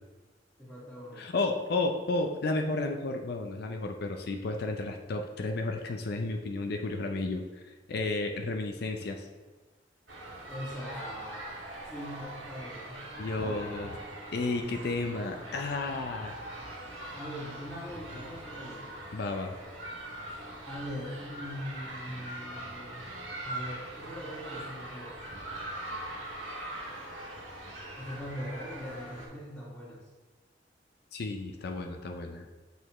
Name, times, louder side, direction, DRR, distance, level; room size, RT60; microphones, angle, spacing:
voice 1, 0.6-1.2 10.5-11.6 11.9-13.1 13.4-14.0 17.1-19.0 20.6-23.1 23.4-25.2 28.0-30.0, equal, 5° left, -12 dB, 1.7 m, -41 dB
voice 2, 1.2-7.4 7.9-9.3 13.2-13.9 14.3-16.3 19.1-19.5 31.1-32.5, left 2 dB, 60° left, 4 dB, 0.5 m, -32 dB
sound 1, 10.1-29.3, right 1 dB, 85° right, 1.8 m, -42 dB
6.8 x 6.5 x 3.0 m, 1.3 s
head